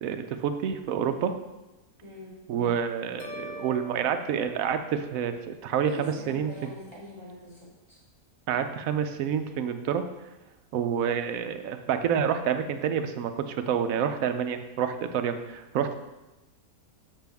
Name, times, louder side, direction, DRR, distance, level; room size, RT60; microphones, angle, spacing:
voice 1, 0.0-1.3 2.5-6.7 8.5-10.0 10.7-16.0, right 8 dB, 75° right, 8 dB, 1.0 m, -28 dB
voice 2, 2.0-2.4 5.8-8.0, equal, 25° left, -7 dB, 2.9 m, -42 dB
sound 1, 3.2-5.5, left 1 dB, 65° left, 1.3 m, -44 dB
7.4 x 5.9 x 3.5 m, 1.0 s
omnidirectional pair, 1.5 m